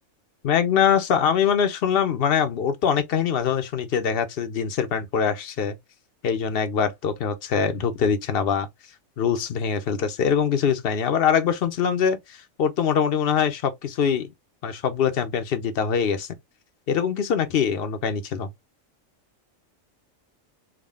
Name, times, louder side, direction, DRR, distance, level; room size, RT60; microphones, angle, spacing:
voice 1, 0.4-5.7 6.2-8.7 9.2-12.2 12.6-14.3 14.6-16.3 16.9-18.5, left 7 dB, 60° left, 0.7 m, -23 dB
3.7 x 2.2 x 3.4 m
omnidirectional pair, 1.4 m